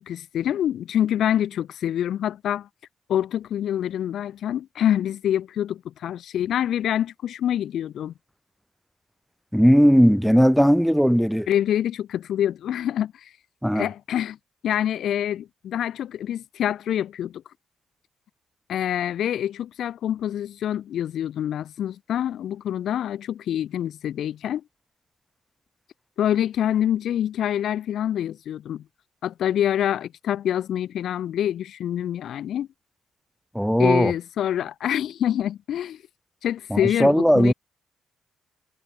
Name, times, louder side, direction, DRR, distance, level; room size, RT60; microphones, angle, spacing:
voice 1, 0.0-2.7 3.1-8.1 11.5-13.3 13.7-14.4 14.6-17.4 18.7-24.6 26.2-28.8 29.2-32.7 33.8-36.0 36.4-37.5, left 10 dB, 70° left, 5.7 m, -26 dB
voice 2, 9.5-11.5 13.6-13.9 33.5-34.1 36.7-37.5, equal, ahead, 5.7 m, -18 dB
cardioid pair, 90°, 0 cm